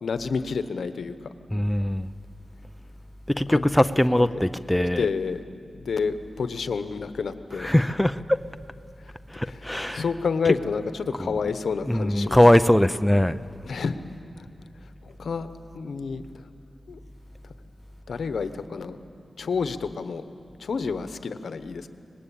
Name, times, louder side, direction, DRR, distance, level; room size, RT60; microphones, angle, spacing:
voice 1, 0.0-1.2 3.5-3.6 4.2-4.4 5.0-7.7 9.5-12.4 13.6-14.0 14.4-14.5 15.0-15.5 15.7-16.5 16.9-17.0 18.1-19.0 19.4-20.2 20.6-21.9, left 5 dB, 80° left, 11 dB, 1.0 m, -29 dB
voice 2, 1.5-2.1 3.3-5.1 7.6-8.4 9.3-10.0 11.2-11.3 11.9-13.4, left 1 dB, 5° left, 11 dB, 0.5 m, -21 dB
25.0 x 20.0 x 8.6 m, 2.4 s
wide cardioid pair, 85°, 0 cm